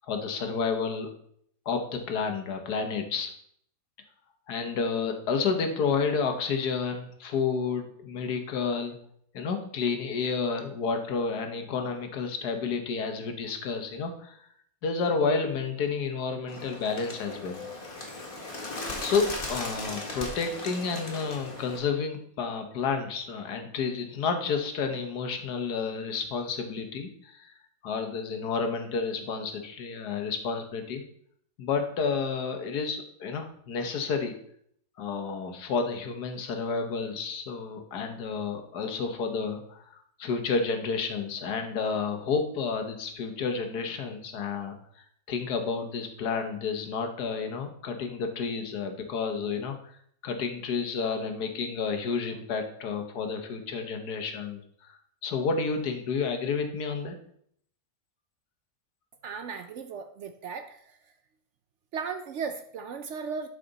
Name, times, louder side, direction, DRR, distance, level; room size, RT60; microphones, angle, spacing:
voice 1, 0.1-1.1 1.6-3.3 4.5-9.0 9.3-14.4 14.8-17.6 19.0-27.5 27.8-31.0 31.6-34.4 35.0-50.0 50.2-57.1, left 5 dB, 85° left, 6 dB, 1.6 m, -30 dB
Bird, 16.5-21.8, left 2 dB, 35° left, 1.7 m, -37 dB
voice 2, 59.2-60.8 61.9-63.5, right 6 dB, 65° right, 8 dB, 0.7 m, -36 dB
11.5 x 5.0 x 4.0 m, 0.67 s
omnidirectional pair, 1.6 m